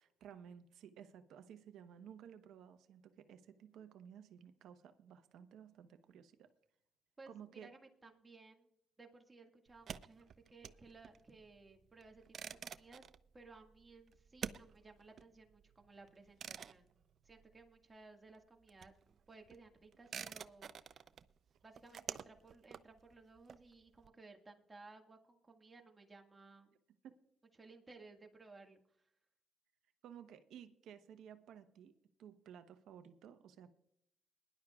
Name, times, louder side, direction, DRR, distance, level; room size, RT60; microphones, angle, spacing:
voice 1, 0.0-6.5 7.3-7.7 27.0-27.2 30.0-31.9 32.2-33.7, right 8 dB, 80° right, 9 dB, 1.0 m, -55 dB
voice 2, 7.2-8.7 9.0-13.1 13.3-21.0 21.6-26.7 27.6-28.8, right 3 dB, 25° right, 3 dB, 1.8 m, -59 dB
sound 1, 9.7-18.0 18.3-24.1, right 7 dB, 55° right, 0.5 m, -50 dB
21.5 x 11.0 x 2.4 m, 0.76 s
cardioid pair, 90°, 0 cm